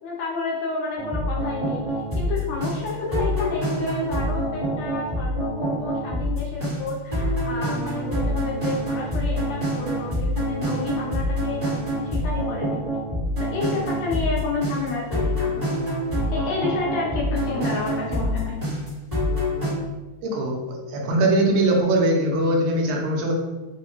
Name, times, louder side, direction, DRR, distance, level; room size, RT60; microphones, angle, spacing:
voice 1, 0.0-1.8 2.1-12.8 13.5-15.8 16.3-18.6, left 3 dB, 75° left, -4 dB, 1.7 m, -30 dB
sound 1, 1.0-19.7, equal, 30° right, 0.7 m, -26 dB
voice 2, 20.2-23.3, right 1 dB, 80° right, 0 dB, 1.9 m, -21 dB
4.8 x 2.1 x 2.9 m, 1.2 s
omnidirectional pair, 3.3 m